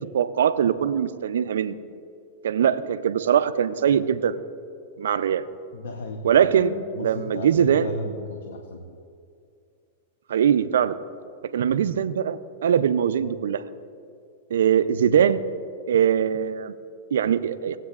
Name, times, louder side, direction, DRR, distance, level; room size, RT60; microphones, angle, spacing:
voice 1, 0.0-1.8 2.4-4.4 5.0-5.5 6.2-7.9 10.3-11.0 11.5-13.6 14.5-15.4 15.9-16.7 17.1-17.8, right 8 dB, 85° right, 12 dB, 0.4 m, -22 dB
voice 2, 5.7-9.0, left 2 dB, 85° left, 4 dB, 0.8 m, -35 dB
17.5 x 8.1 x 2.4 m, 2.4 s
hypercardioid pair, 130°, 0 cm